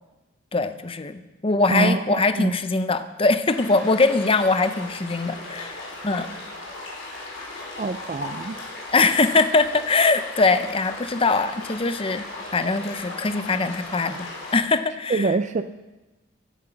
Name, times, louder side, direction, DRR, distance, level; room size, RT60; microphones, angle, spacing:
voice 1, 0.5-6.3 8.9-12.2 12.5-15.4, left 3 dB, 30° left, 10 dB, 0.6 m, -22 dB
voice 2, 1.7-2.5 7.8-8.6 15.1-15.6, right 3 dB, 35° right, 9 dB, 0.4 m, -24 dB
sound 1, 3.5-14.6, left 2 dB, 80° left, 4.3 m, -37 dB
15.5 x 10.0 x 5.8 m, 1.1 s
head